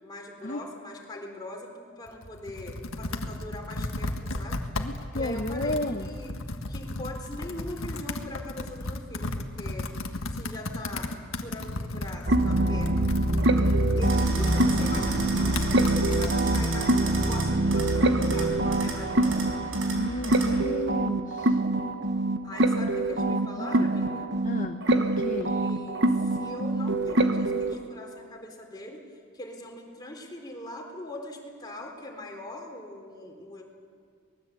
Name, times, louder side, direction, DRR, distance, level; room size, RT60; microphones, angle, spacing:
voice 1, 0.0-4.6 5.2-6.3 6.7-9.9 10.3-11.1 11.4-13.1 13.5-19.5 22.4-24.3 25.4-29.1 29.3-33.6, left 1 dB, 20° left, 0 dB, 3.8 m, -41 dB
Computer keyboard, 2.1-16.7, left 2 dB, 75° left, 1.6 m, -35 dB
voice 2, 4.8-6.1 19.9-21.6 23.2-23.9 24.4-25.5, left 1 dB, 40° left, 5 dB, 0.8 m, -33 dB
sound 1, 12.3-27.7, right 2 dB, 55° right, 1.3 m, -24 dB
sound 2, 14.0-20.6, right 2 dB, 70° right, 4.5 m, -36 dB
24.0 x 20.0 x 8.2 m, 2.2 s
head